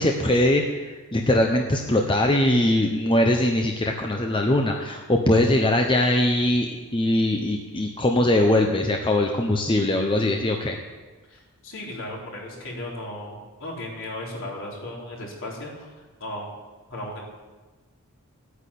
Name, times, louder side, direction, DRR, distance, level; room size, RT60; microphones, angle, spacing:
voice 1, 0.0-10.8, left 1 dB, 20° left, 2 dB, 0.9 m, -21 dB
voice 2, 11.3-15.9 16.2-16.5 16.9-17.2, left 1 dB, 60° left, -3 dB, 4.2 m, -35 dB
12.5 x 9.7 x 8.5 m, 1.3 s
head